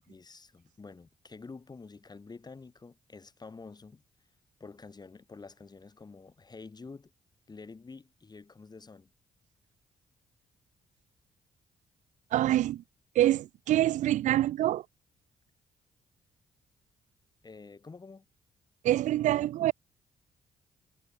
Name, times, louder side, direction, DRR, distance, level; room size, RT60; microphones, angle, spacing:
voice 1, 0.1-4.0 4.6-7.1 7.5-9.1 17.4-18.2, left 4 dB, 35° left, 6.6 m, -48 dB
voice 2, 12.3-12.8 13.1-14.8 18.8-19.7, right 13 dB, 80° right, 0.7 m, -25 dB
supercardioid pair, 65°, 13 cm